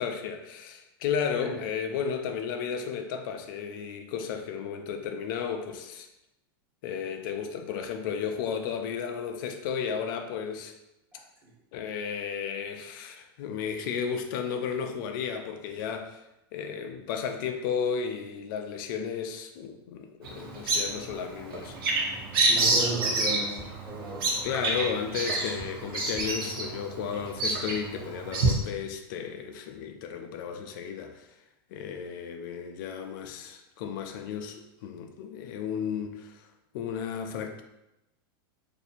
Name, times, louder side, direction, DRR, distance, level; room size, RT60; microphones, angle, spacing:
voice 1, 0.0-6.1 6.8-10.7 11.7-16.2 16.5-21.8 24.4-31.3 31.7-36.5 36.7-37.6, left 7 dB, 60° left, 6 dB, 0.4 m, -33 dB
voice 2, 11.1-11.5 22.4-24.3, right 2 dB, 15° right, -7 dB, 1.4 m, -35 dB
Bird vocalization bird call bird song, 20.2-28.5, right 2 dB, 65° right, 0.9 m, -28 dB
2.7 x 2.5 x 4.0 m, 0.92 s
supercardioid pair, 135°, 13 cm